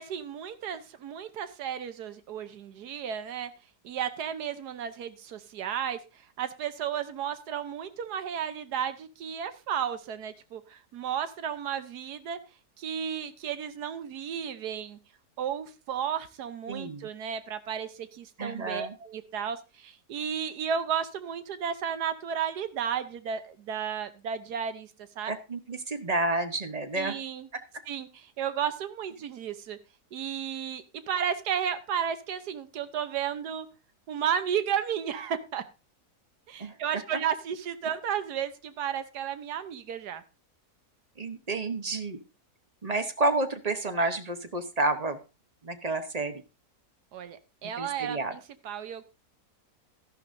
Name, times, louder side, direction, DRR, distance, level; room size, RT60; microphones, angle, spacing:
voice 1, 0.0-3.5 3.8-6.0 6.4-12.4 12.8-15.0 15.4-25.3 26.9-27.5 27.9-29.8 30.1-33.7 34.1-35.6 36.5-40.2 47.1-49.0, right 8 dB, 80° right, 11 dB, 1.4 m, -33 dB
voice 2, 16.7-17.1 18.4-18.9 25.3-27.2 36.6-36.8 41.2-42.2 42.8-45.2 45.6-46.4 47.8-48.4, right 2 dB, 30° right, 9 dB, 0.8 m, -30 dB
13.0 x 11.5 x 2.6 m, 0.29 s
omnidirectional pair, 1.7 m